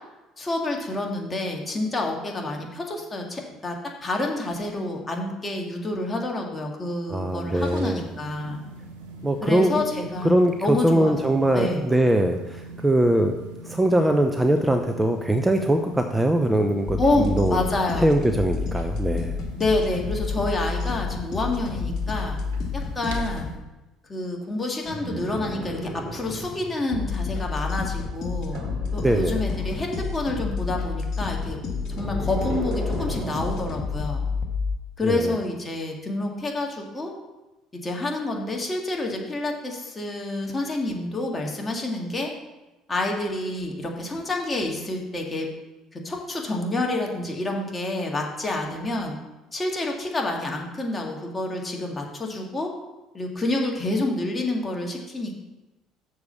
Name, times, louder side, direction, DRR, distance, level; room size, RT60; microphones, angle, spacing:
voice 1, 0.4-8.6 9.4-10.3 10.6-11.8 17.0-18.1 19.6-22.4 22.7-23.5 24.1-28.6 28.9-31.6 32.0-34.2 35.0-37.1 37.7-42.3 42.9-45.5 45.9-49.2 49.5-52.7 53.1-55.3, left 2 dB, 25° left, 0 dB, 2.0 m, -28 dB
voice 2, 7.1-8.0 9.2-9.8 10.2-13.4 13.6-17.6 18.0-19.4 29.0-29.4 35.0-35.4, right 1 dB, 10° right, 5 dB, 0.7 m, -22 dB
sound 1, 7.3-23.5, right 2 dB, 85° right, 1.4 m, -42 dB
sound 2, 16.9-23.5 26.9-34.8, left 5 dB, 55° left, 1.7 m, -29 dB
sound 3, 24.8-26.8 28.5-30.2 31.5-33.8 35.2-35.3, right 1 dB, 35° right, 2.7 m, -35 dB
6.9 x 4.7 x 6.9 m, 1.1 s
hypercardioid pair, 65°, 0 cm